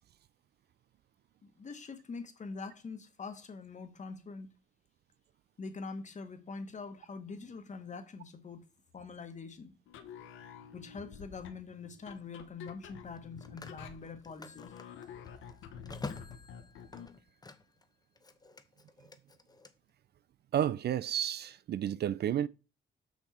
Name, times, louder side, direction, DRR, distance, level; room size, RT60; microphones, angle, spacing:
voice 1, 1.4-4.5 5.6-8.6 8.9-9.7 10.7-14.7, left 4 dB, 35° left, 1.4 m, -44 dB
sound 1, 9.9-17.2, left 7 dB, 80° left, 1.0 m, -49 dB
Telephone, 10.8-11.0 13.0-17.8 18.1-19.7, left 3 dB, 20° left, 0.9 m, -48 dB
voice 2, 20.5-22.5, right 10 dB, 55° right, 0.4 m, -31 dB
6.2 x 5.9 x 4.3 m
cardioid pair, 90°, 20 cm